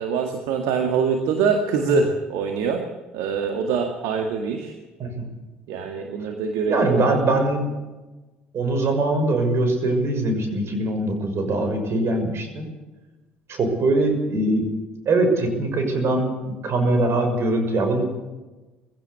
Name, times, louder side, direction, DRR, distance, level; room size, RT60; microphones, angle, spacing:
voice 1, 0.0-2.8 3.1-4.7 5.7-7.2, right 5 dB, 65° right, 5 dB, 2.1 m, -24 dB
voice 2, 6.7-7.7 8.5-12.7 13.5-14.7 15.0-16.3 16.6-18.0, right 2 dB, 45° right, 6 dB, 6.3 m, -22 dB
21.0 x 16.5 x 8.2 m, 1.1 s
figure-of-eight pair, 55°, 6 cm